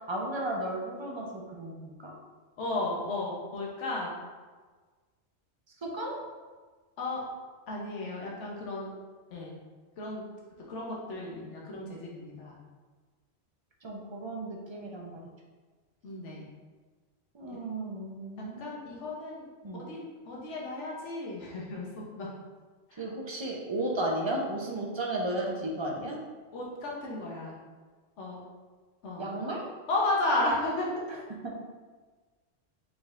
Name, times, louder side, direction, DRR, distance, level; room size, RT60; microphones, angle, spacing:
voice 1, 0.1-2.1 5.8-6.2 13.8-15.2 17.3-18.8 19.6-19.8 22.9-26.2 29.2-29.7 31.4-31.7, right 1 dB, 35° right, -1 dB, 0.5 m, -34 dB
voice 2, 2.6-4.1 7.0-7.2 7.7-8.9 9.3-9.5 10.0-10.2 10.7-12.6 16.0-16.5 18.4-19.5 19.7-22.3 22.9-23.0 26.5-27.6 28.2-28.4 29.0-29.3 29.9-30.9, left 2 dB, 80° left, -3 dB, 1.1 m, -33 dB
4.9 x 3.8 x 2.4 m, 1.4 s
omnidirectional pair, 1.2 m